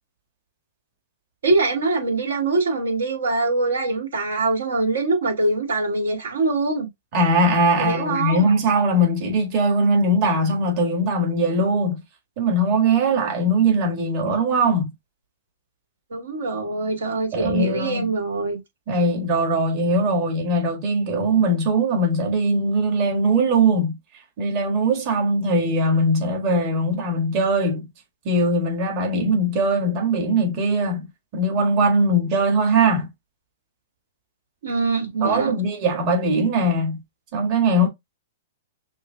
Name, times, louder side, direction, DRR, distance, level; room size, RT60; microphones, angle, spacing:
voice 1, 1.4-6.9 7.8-8.5 16.1-18.6 34.6-35.6, right 3 dB, 90° right, 2.0 m, -23 dB
voice 2, 7.1-12.0 12.4-14.9 17.3-18.1 18.9-24.0 24.4-27.9 28.2-31.1 31.3-33.1 35.2-37.0 37.3-37.9, right 1 dB, 40° right, 1.6 m, -20 dB
6.3 x 2.7 x 2.2 m
hypercardioid pair, 140°, 0 cm